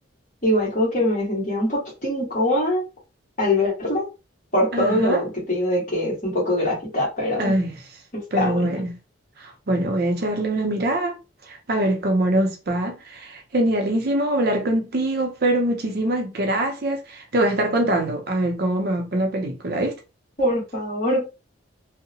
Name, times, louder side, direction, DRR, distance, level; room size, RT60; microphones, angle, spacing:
voice 1, 0.4-2.8 3.4-4.1 4.5-7.5 8.1-8.6 20.4-21.3, left 1 dB, 40° left, 1.3 m, -23 dB
voice 2, 4.7-5.2 7.4-7.8 8.3-9.0 9.4-11.2 11.4-20.0, right 1 dB, 50° right, 0.6 m, -23 dB
2.7 x 2.0 x 2.7 m
head